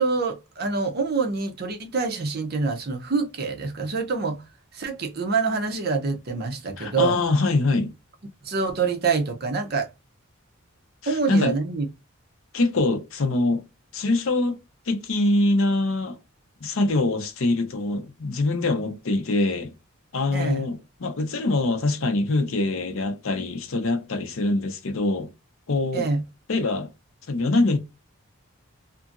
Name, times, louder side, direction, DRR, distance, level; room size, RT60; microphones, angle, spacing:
voice 1, 0.0-4.4 4.7-7.2 8.4-9.9 11.1-11.9 20.3-20.7 25.9-26.2, right 4 dB, 45° right, 0.6 m, -26 dB
voice 2, 6.8-7.9 11.0-11.5 12.5-13.6 13.9-14.6 14.9-16.2 16.6-19.7 20.1-25.3 25.7-26.1 26.5-26.9 27.3-27.8, left 2 dB, 65° left, 0.6 m, -24 dB
2.7 x 2.5 x 2.5 m
head